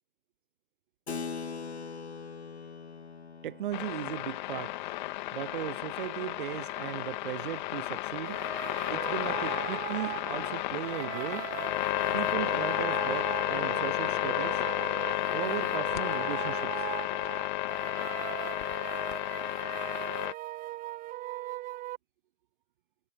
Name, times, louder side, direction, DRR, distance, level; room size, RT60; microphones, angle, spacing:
Keyboard (musical), 1.1-7.1, left 5 dB, 75° left, 2.0 m, -43 dB
voice 1, 3.4-4.8 5.3-8.4 8.9-11.5 12.1-14.6 15.3-16.8, right 12 dB, 50° right, 1.0 m, -37 dB
sound 1, 3.7-20.3, left 17 dB, 45° left, 2.6 m, -32 dB
sound 2, 8.2-22.0, right 17 dB, 25° right, 1.6 m, -39 dB
figure-of-eight pair, 105°, 33 cm